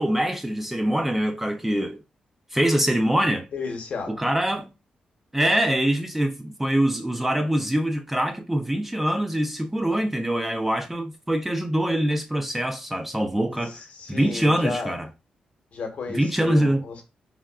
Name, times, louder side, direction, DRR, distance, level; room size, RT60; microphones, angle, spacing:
voice 1, 0.0-2.0 2.5-3.5 4.1-4.7 5.3-13.8 14.1-15.1 16.1-16.8, right 1 dB, 10° right, 0.4 m, -24 dB
voice 2, 3.5-4.2 13.6-14.9 15.7-17.0, left 4 dB, 60° left, 0.9 m, -33 dB
3.5 x 2.2 x 2.2 m
cardioid pair, 105°, 3 cm